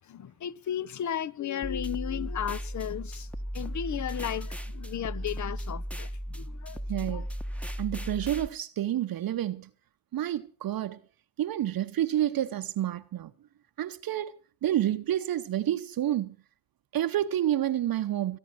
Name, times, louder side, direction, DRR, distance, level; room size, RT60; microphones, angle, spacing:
voice 1, 0.1-3.3 3.5-6.1 6.3-7.3, left 10 dB, 40° left, 0.8 m, -34 dB
sound 1, 1.6-8.5, equal, 5° left, 1.2 m, -36 dB
voice 2, 6.9-7.3 7.8-9.7 10.1-11.0 11.4-13.3 13.8-14.3 14.6-16.4 16.9-18.4, right 12 dB, 50° right, 0.9 m, -29 dB
23.5 x 9.8 x 6.1 m
hypercardioid pair, 55°, 45 cm